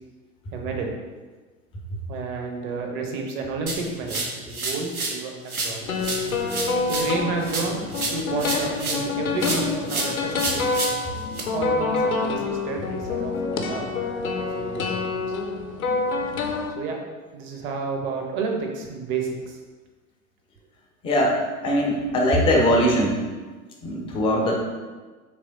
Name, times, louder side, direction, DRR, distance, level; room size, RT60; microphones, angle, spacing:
voice 1, 0.5-0.9 2.1-6.0 6.3-6.4 6.9-10.6 11.5-13.9 14.5-15.3 16.8-17.0 17.3-19.6, right 4 dB, 30° right, 1 dB, 0.6 m, -31 dB
sound 1, 3.7-5.2 5.5-9.1 9.4-11.4, right 2 dB, 85° right, 0.8 m, -30 dB
sound 2, 5.8-16.7, left 3 dB, 75° left, 0.6 m, -27 dB
voice 2, 21.0-21.4 21.6-23.2 23.8-24.6, equal, 15° left, -1 dB, 0.4 m, -21 dB
3.4 x 3.0 x 3.8 m, 1.3 s
figure-of-eight pair, 90°, 43 cm